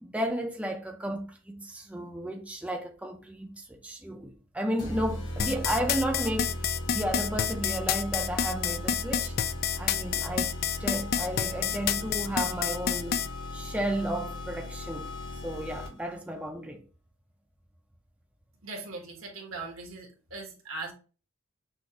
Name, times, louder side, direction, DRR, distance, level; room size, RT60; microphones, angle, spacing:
voice 1, 0.0-9.3 9.8-10.5 10.8-13.2 13.5-15.1 15.4-16.8, right 1 dB, 5° right, 0.5 m, -33 dB
sound 1, 4.8-16.2, left 1 dB, 65° left, 1.3 m, -37 dB
sound 2, 5.4-13.3, left 9 dB, 45° left, 0.3 m, -28 dB
voice 2, 18.6-20.9, right 3 dB, 75° right, 1.5 m, -40 dB
6.3 x 2.5 x 2.9 m
head